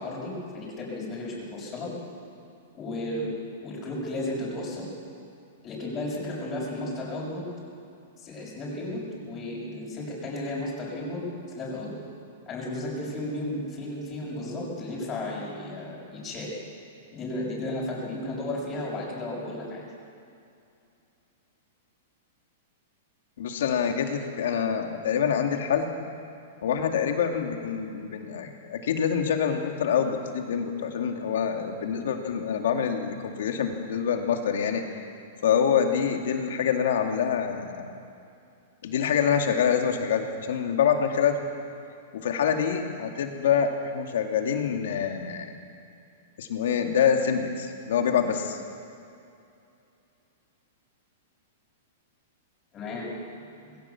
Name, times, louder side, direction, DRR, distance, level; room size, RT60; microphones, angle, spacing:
voice 1, 0.0-1.9 2.7-3.3 3.6-4.9 5.6-7.4 8.2-12.0 12.5-16.5 17.1-19.8 52.7-53.1, left 1 dB, 25° left, -5 dB, 6.6 m, -34 dB
voice 2, 23.4-25.9 26.6-35.0 35.4-37.9 38.8-41.4 42.2-45.6 46.4-48.6, left 7 dB, 75° left, 4 dB, 2.4 m, -26 dB
21.0 x 17.0 x 7.2 m, 2.6 s
hypercardioid pair, 135°, 0 cm